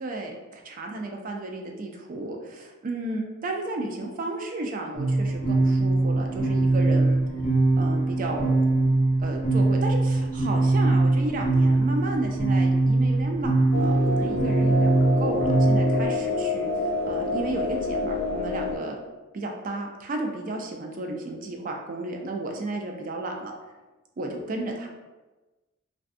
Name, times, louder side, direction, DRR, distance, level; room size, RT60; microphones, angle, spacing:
voice 1, 0.0-7.2 7.8-8.6 9.2-16.7 17.1-18.9 19.3-23.5 24.2-24.9, right 2 dB, 40° right, 2 dB, 0.3 m, -33 dB
sound 1, 4.9-16.1, right 2 dB, 35° left, 0.8 m, -22 dB
sound 2, 13.7-18.8, left 3 dB, 85° left, 0.3 m, -27 dB
2.5 x 2.2 x 2.4 m, 1.2 s
head